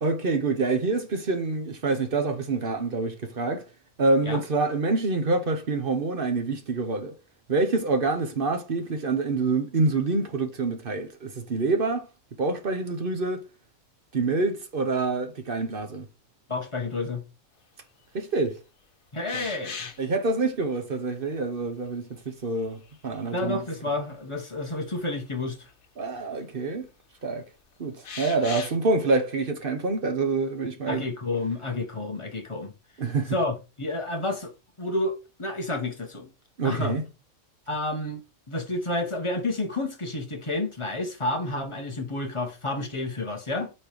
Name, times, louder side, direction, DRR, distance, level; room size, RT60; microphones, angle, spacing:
voice 1, 0.0-3.6 4.0-7.1 7.5-12.1 12.4-13.4 14.1-16.1 18.1-18.6 19.3-19.4 20.0-23.6 26.0-26.9 27.2-27.4 27.8-31.0 33.0-33.4 36.6-37.0, right 3 dB, 45° right, 1.0 m, -26 dB
voice 2, 16.5-17.2 19.1-19.9 23.3-25.6 30.9-32.7 33.3-34.5 34.8-36.3 36.6-37.0 37.7-43.7, left 2 dB, 25° left, 1.0 m, -30 dB
sound 1, 19.3-20.1 21.6-21.7 22.6-23.4 23.8-23.9 25.8-25.9 28.0-28.8, left 5 dB, 75° left, 1.4 m, -38 dB
4.4 x 4.4 x 5.0 m
omnidirectional pair, 1.5 m